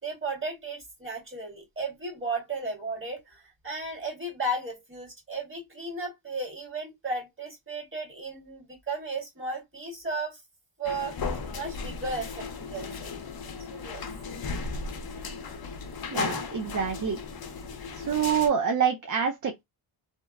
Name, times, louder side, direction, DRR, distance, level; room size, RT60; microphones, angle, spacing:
voice 1, 0.0-10.4 10.8-11.2 11.5-13.2 13.7-14.0, right 2 dB, 25° right, 1.8 m, -35 dB
sound 1, 10.8-18.5, left 4 dB, 50° left, 0.6 m, -36 dB
voice 2, 16.1-17.2 18.0-19.6, right 7 dB, 40° right, 0.5 m, -26 dB
2.8 x 2.2 x 2.2 m
cardioid pair, 75°, 48 cm